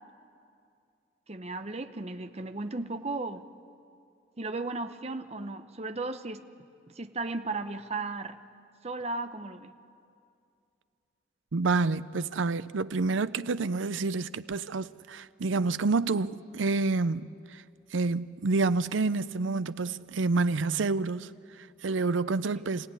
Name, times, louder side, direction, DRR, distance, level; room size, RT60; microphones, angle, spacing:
voice 1, 1.3-3.4 4.4-6.4 7.0-8.4 8.8-9.7, right 3 dB, 35° right, 0.9 m, -35 dB
voice 2, 11.5-17.6 17.9-22.9, right 3 dB, 90° right, 0.6 m, -28 dB
27.0 x 17.0 x 9.8 m
head